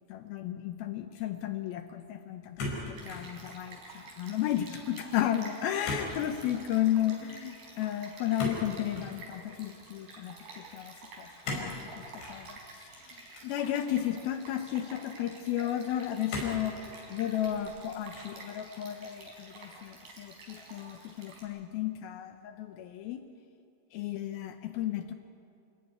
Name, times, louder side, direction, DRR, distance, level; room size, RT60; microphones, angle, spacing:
voice 1, 0.1-16.8 17.1-23.2 23.9-25.1, left 11 dB, 80° left, 9 dB, 2.2 m, -34 dB
sound 1, 2.6-3.3 3.7-4.1 5.8-6.1 6.4-6.6 8.4-9.2 11.4-11.8 12.2-12.4 13.3-14.1 14.8-14.9 16.3-16.7 17.3-17.8 18.1-18.5, left 2 dB, 65° left, 6.8 m, -37 dB
Stream, 3.0-21.4, right 3 dB, 50° right, 6.0 m, -50 dB
28.5 x 16.5 x 9.6 m, 2.5 s
omnidirectional pair, 5.4 m